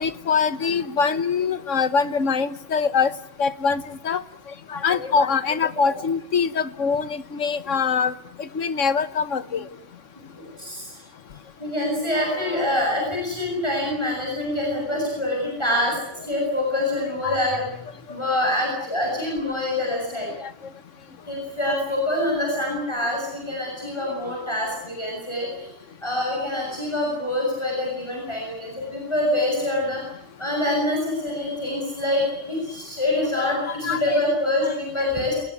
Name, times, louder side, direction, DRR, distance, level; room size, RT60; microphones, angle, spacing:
voice 1, 0.0-3.1 3.4-4.2 4.7-8.1 8.4-9.6 17.2-17.4 33.3-34.2, left 5 dB, 90° left, 14 dB, 1.6 m, -23 dB
voice 2, 10.3-11.0 11.6-16.0 16.2-17.6 18.1-20.3 21.2-25.7 26.0-30.0 30.4-35.4, left 1 dB, 20° left, -2 dB, 8.2 m, -25 dB
29.0 x 19.0 x 9.6 m, 0.72 s
omnidirectional pair, 1.3 m